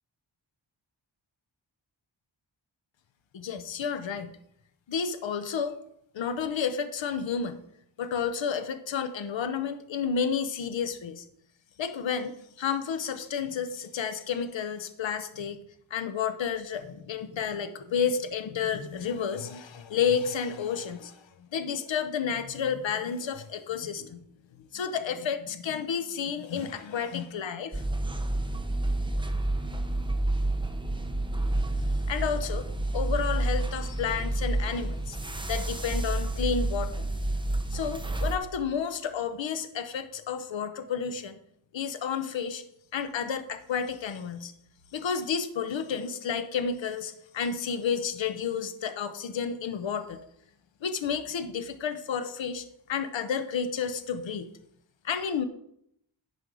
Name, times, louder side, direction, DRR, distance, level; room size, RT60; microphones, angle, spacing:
voice 1, 3.3-4.4 4.9-5.8 6.1-7.6 8.0-11.2 11.8-15.6 15.9-21.2 21.5-24.2 24.6-27.8 32.1-32.7 32.9-35.2 35.5-37.1 37.7-41.4 41.7-42.6 42.9-44.5 44.9-50.2 50.8-54.5 55.0-55.5, left 6 dB, 70° left, 10 dB, 0.9 m, -31 dB
sound 1, 27.7-38.4, right 1 dB, 10° right, 0.8 m, -29 dB
11.0 x 5.3 x 4.8 m, 0.74 s
wide cardioid pair, 100°, 46 cm